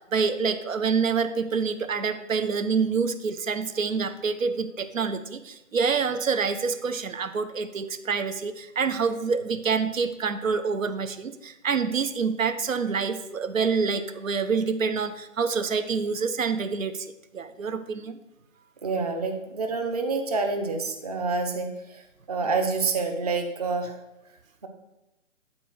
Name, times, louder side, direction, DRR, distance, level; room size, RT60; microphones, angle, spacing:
voice 1, 0.0-17.1 17.3-18.2, right 5 dB, 85° right, 10 dB, 0.7 m, -27 dB
voice 2, 18.8-24.0, right 4 dB, 30° right, 5 dB, 0.6 m, -28 dB
8.7 x 4.3 x 4.6 m, 0.93 s
figure-of-eight pair, 155°, 39 cm